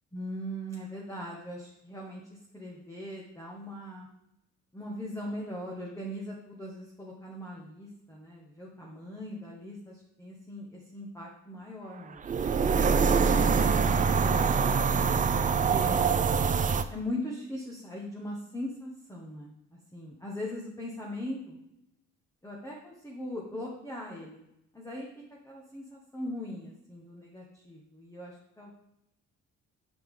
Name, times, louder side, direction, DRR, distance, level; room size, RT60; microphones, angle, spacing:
voice 1, 0.1-4.1 4.7-13.0 14.1-16.0 16.9-19.6 19.9-21.6 22.4-24.4 24.7-25.1 25.4-28.7, left 1 dB, 10° left, -3 dB, 1.1 m, -40 dB
sound 1, 12.2-16.8, right 5 dB, 25° right, 0.4 m, -24 dB
5.6 x 5.0 x 3.7 m, 0.82 s
cardioid pair, 90°, 30 cm